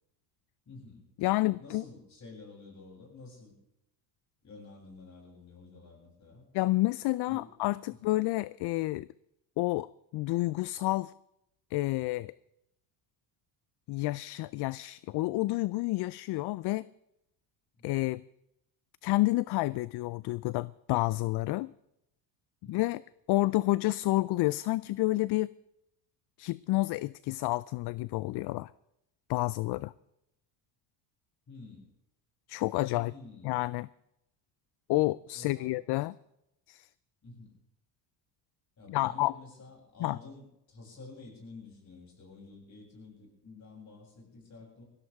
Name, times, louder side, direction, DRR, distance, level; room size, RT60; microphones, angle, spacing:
voice 1, 0.7-1.0 1.6-3.5 4.4-6.4 7.3-7.5 22.6-22.9 31.5-31.9 32.9-33.6 35.3-35.7 37.2-37.6 38.8-44.8, left 3 dB, 35° left, -1 dB, 7.7 m, -50 dB
voice 2, 1.2-1.8 6.5-9.1 9.6-11.1 11.7-12.3 13.9-16.9 17.8-18.2 19.0-21.7 22.7-23.0 23.3-25.5 26.4-28.7 29.3-29.9 32.5-33.1 33.4-33.9 34.9-36.1 36.7-36.9 38.9-39.3 40.0-40.2, left 19 dB, 55° left, 20 dB, 0.5 m, -29 dB
21.0 x 16.0 x 3.6 m, 0.83 s
supercardioid pair, 90°, 48 cm